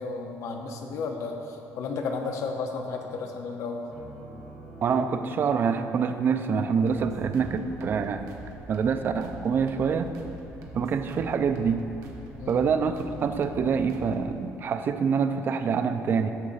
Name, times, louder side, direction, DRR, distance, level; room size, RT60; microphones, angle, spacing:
voice 1, 0.0-3.9 12.4-12.6, left 4 dB, 65° left, 3 dB, 0.9 m, -33 dB
Piano, 3.9-9.4, right 2 dB, 5° right, 1.7 m, -49 dB
voice 2, 4.8-8.3 8.7-10.1 10.7-11.8 12.5-16.3, right 6 dB, 40° right, 8 dB, 0.4 m, -26 dB
sound 1, 6.9-14.4, right 1 dB, 85° right, 1.2 m, -44 dB
11.0 x 3.8 x 7.1 m, 3.0 s
cardioid pair, 160°, 6 cm